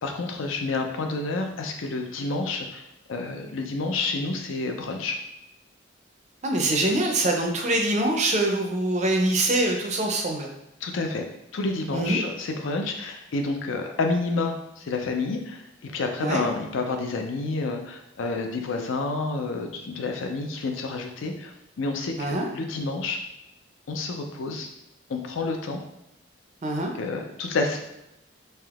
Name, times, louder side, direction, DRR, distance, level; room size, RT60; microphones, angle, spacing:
voice 1, 0.0-5.2 10.8-11.2 11.5-23.2 23.9-24.7 25.1-25.8 26.9-27.8, left 3 dB, 80° left, 4 dB, 0.4 m, -29 dB
voice 2, 6.4-10.5 11.9-12.2 16.2-16.5 22.2-22.5 26.6-26.9, right 2 dB, 35° right, 2 dB, 0.4 m, -24 dB
3.3 x 2.7 x 2.3 m, 0.86 s
head